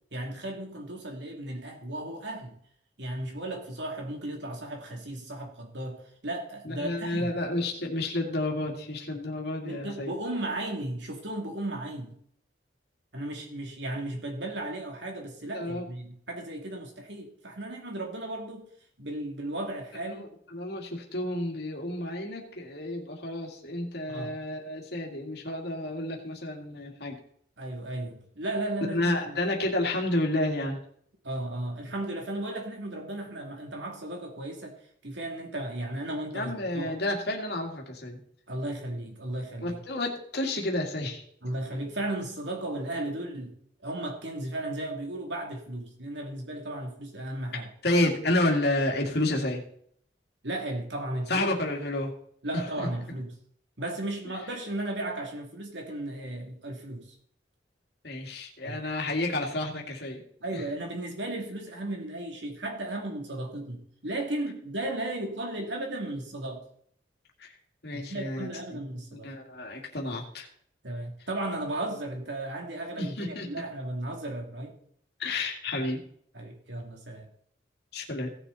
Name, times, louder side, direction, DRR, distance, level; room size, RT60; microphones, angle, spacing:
voice 1, 0.1-2.6 3.0-7.3 9.6-12.2 13.1-18.7 19.0-20.3 24.1-24.3 27.6-29.4 31.2-34.7 35.0-36.9 38.5-39.8 41.4-43.5 43.8-47.7 50.4-51.5 52.4-53.3 53.8-57.1 58.6-58.8 60.4-66.6 67.9-69.3 70.8-74.7 76.3-77.3, right 1 dB, 70° right, 1 dB, 2.9 m, -35 dB
voice 2, 6.6-10.1 15.5-15.9 19.9-27.2 28.9-30.8 36.3-38.2 39.6-41.2 47.8-49.6 51.3-52.1 52.5-52.9 58.0-60.2 60.5-60.6 67.4-67.6 67.8-68.8 69.1-70.5 73.0-73.5 75.2-76.0 77.9-78.3, left 1 dB, 60° left, 0 dB, 2.3 m, -30 dB
17.5 x 7.0 x 4.2 m, 0.65 s
head